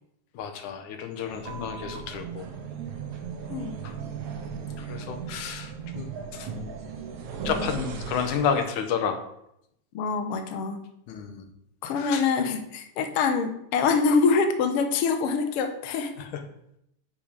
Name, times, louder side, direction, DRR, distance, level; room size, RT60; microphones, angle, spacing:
voice 1, 0.3-2.5 3.8-3.9 4.5-6.5 7.4-9.2 11.1-11.5 12.0-12.3 16.2-16.4, left 7 dB, 70° left, 6 dB, 2.3 m, -31 dB
sound 1, 1.3-8.8, right 5 dB, 70° right, 2.2 m, -37 dB
voice 2, 9.9-10.9 11.8-16.1, left 5 dB, 85° left, 6 dB, 1.3 m, -25 dB
8.5 x 6.0 x 5.1 m, 0.77 s
omnidirectional pair, 3.9 m